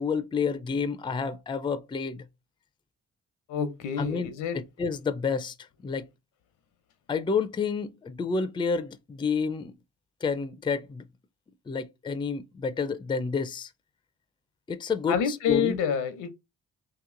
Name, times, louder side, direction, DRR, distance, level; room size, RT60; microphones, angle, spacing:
voice 1, 0.0-2.2 4.0-5.6 5.8-6.1 7.1-9.7 10.2-11.0 11.7-13.7 14.7-15.8, left 5 dB, 15° left, 0.4 m, -29 dB
voice 2, 3.5-4.6 15.1-16.3, left 7 dB, 85° left, 0.8 m, -28 dB
2.9 x 2.8 x 3.7 m
cardioid pair, 90°, 30 cm